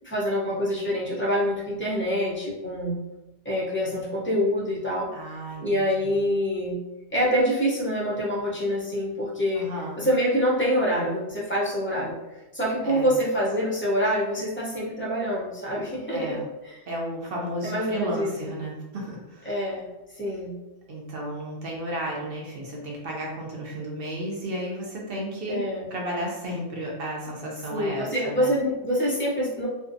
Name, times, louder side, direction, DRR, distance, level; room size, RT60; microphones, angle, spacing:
voice 1, 0.0-3.0 3.4-5.1 5.6-6.8 7.1-9.7 10.0-16.8 17.6-18.3 19.4-19.9 20.1-20.5 25.5-25.9 27.7-29.7, equal, 15° left, -6 dB, 0.4 m, -26 dB
voice 2, 5.1-6.2 9.5-10.0 12.8-13.1 16.1-16.5 16.9-19.5 20.9-25.6 25.9-28.5, right 1 dB, 60° right, -2 dB, 0.7 m, -33 dB
2.5 x 2.1 x 2.5 m, 1.0 s
omnidirectional pair, 1.2 m